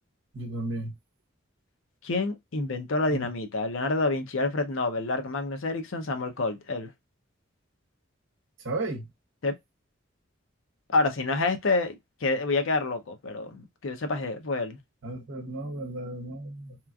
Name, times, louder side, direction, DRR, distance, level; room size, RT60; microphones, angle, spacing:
voice 1, 0.3-0.9 3.1-3.3 8.6-9.1 15.0-16.8, right 2 dB, 65° right, 0.8 m, -34 dB
voice 2, 2.0-6.9 9.4-9.6 10.9-12.0 12.2-14.8, left 3 dB, 70° left, 0.6 m, -28 dB
3.0 x 2.4 x 2.2 m
head